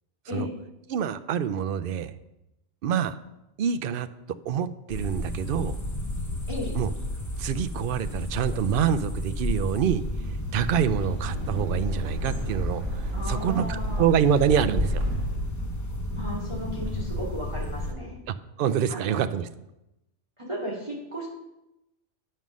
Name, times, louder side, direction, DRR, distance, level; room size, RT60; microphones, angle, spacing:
voice 1, 0.9-2.1 2.8-3.2 3.6-4.1 4.5-5.8 6.7-6.9 7.4-10.0 10.5-15.0 18.3-19.5, right 8 dB, 60° right, 12 dB, 0.6 m, -26 dB
sound 1, 4.9-17.9, left 1 dB, 15° left, 0.8 m, -32 dB
Wind, 10.5-15.5, equal, 75° right, 2.6 m, -33 dB
voice 2, 13.1-14.1 16.1-18.2 18.9-19.3 20.4-21.3, equal, 25° right, -4 dB, 2.3 m, -35 dB
9.3 x 5.4 x 6.2 m, 0.92 s
omnidirectional pair, 1.2 m